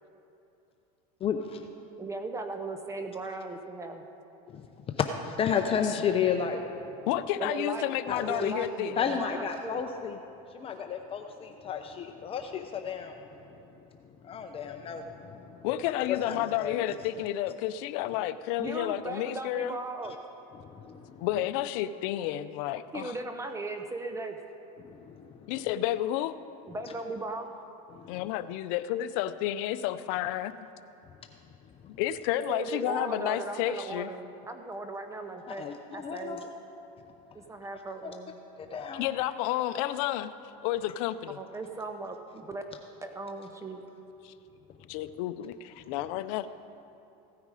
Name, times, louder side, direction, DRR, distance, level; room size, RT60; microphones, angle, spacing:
voice 1, 1.2-1.6 4.5-4.6 5.0-7.1 8.1-8.5 9.0-10.2 10.5-13.2 14.2-15.7 16.0-16.7 20.5-21.3 24.8-25.5 27.9-28.2 35.5-36.4 38.0-38.1 38.6-39.2, left 7 dB, 30° left, 5 dB, 0.7 m, -33 dB
voice 2, 2.0-4.0 7.4-8.0 8.2-9.8 18.6-20.2 22.9-24.4 26.7-27.5 32.5-35.7 35.9-36.5 37.3-38.4 41.3-42.6 43.0-43.8, right 3 dB, 15° right, 6 dB, 0.7 m, -37 dB
voice 3, 7.1-9.0 15.6-19.8 21.2-23.1 25.5-26.3 28.1-30.6 32.0-34.1 38.9-40.3 40.6-41.4 44.2-44.3 44.9-46.5, left 13 dB, 70° left, 13 dB, 0.6 m, -31 dB
16.0 x 9.5 x 4.9 m, 2.8 s
supercardioid pair, 125°, 18 cm